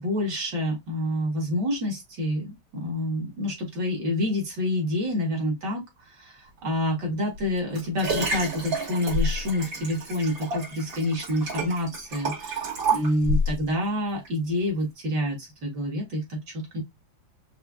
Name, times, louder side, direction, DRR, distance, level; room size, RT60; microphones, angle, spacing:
voice 1, 0.0-16.8, left 1 dB, 65° right, 2.2 m, -28 dB
Liquid, 7.3-13.6 14.3-14.4, right 1 dB, 90° right, 2.7 m, -29 dB
5.4 x 2.1 x 2.5 m
omnidirectional pair, 2.0 m